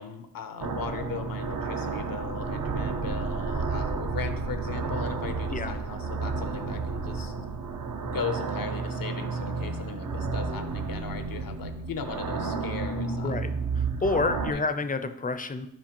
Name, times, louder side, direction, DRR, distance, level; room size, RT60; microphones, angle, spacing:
voice 1, 0.0-7.3 8.0-13.5 14.5-14.6, left 6 dB, 85° left, 9 dB, 0.6 m, -38 dB
sound 1, 0.6-14.5, right 4 dB, 65° right, 0.6 m, -31 dB
voice 2, 13.8-15.7, left 3 dB, 25° left, 10 dB, 0.4 m, -29 dB
7.2 x 5.0 x 2.9 m, 0.81 s
wide cardioid pair, 65°, 34 cm